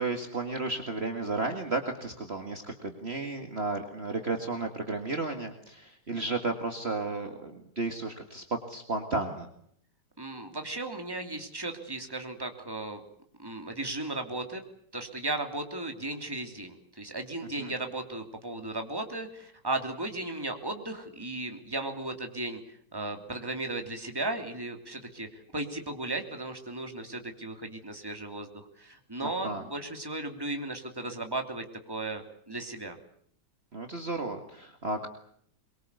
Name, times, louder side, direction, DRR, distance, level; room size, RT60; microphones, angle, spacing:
voice 1, 0.0-9.5 17.6-17.7 29.4-29.6 33.7-35.1, right 3 dB, 35° right, 4 dB, 2.2 m, -33 dB
voice 2, 10.2-13.0 13.4-14.6 14.9-22.6 22.9-33.0, right 2 dB, 15° right, 4 dB, 3.0 m, -36 dB
23.5 x 23.0 x 8.3 m, 0.66 s
omnidirectional pair, 1.8 m